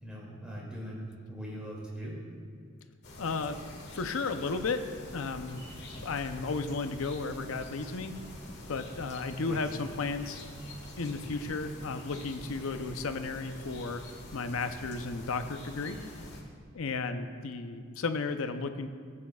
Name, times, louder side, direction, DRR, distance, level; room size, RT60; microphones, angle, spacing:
voice 1, 0.0-2.2 9.4-9.6, equal, 5° right, -6 dB, 2.3 m, -41 dB
sound 1, 3.0-16.4, left 1 dB, 55° left, 1.6 m, -46 dB
voice 2, 3.2-3.6 3.9-4.8 5.1-5.6 6.0-8.1 8.7-10.4 11.0-14.0 14.3-16.0 16.7-18.9, left 4 dB, 80° left, 8 dB, 0.6 m, -34 dB
16.0 x 8.6 x 2.3 m, 2.1 s
head